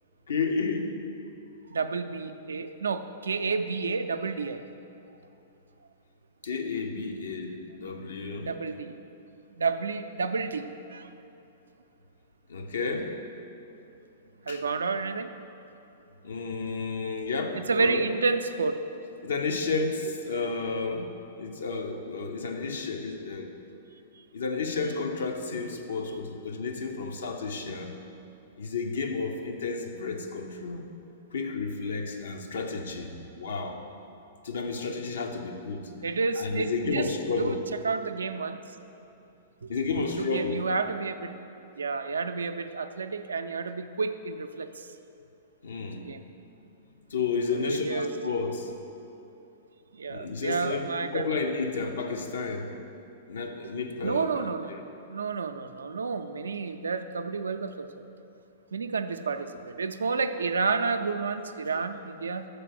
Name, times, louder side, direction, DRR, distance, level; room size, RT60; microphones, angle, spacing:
voice 1, 0.3-1.0 6.4-8.5 12.5-13.2 14.5-14.6 16.2-18.0 19.2-21.1 21.4-23.5 24.3-27.9 28.6-30.8 31.3-33.8 34.4-35.9 36.4-37.6 39.7-40.6 45.6-46.1 47.1-48.7 50.1-52.7 53.3-54.4 54.7-54.8, left 4 dB, 75° left, 4 dB, 0.7 m, -31 dB
voice 2, 1.7-4.6 8.4-9.0 9.5-11.1 14.5-15.3 17.5-18.8 36.0-37.1 37.4-37.6 37.8-38.6 39.6-39.7 40.0-41.3 41.8-44.9 46.0-46.2 47.5-48.1 49.9-51.3 54.0-54.8 55.1-58.0 58.7-62.5, right 4 dB, 85° right, 8 dB, 0.4 m, -30 dB
6.8 x 4.7 x 5.9 m, 2.9 s
hypercardioid pair, 115°, 0 cm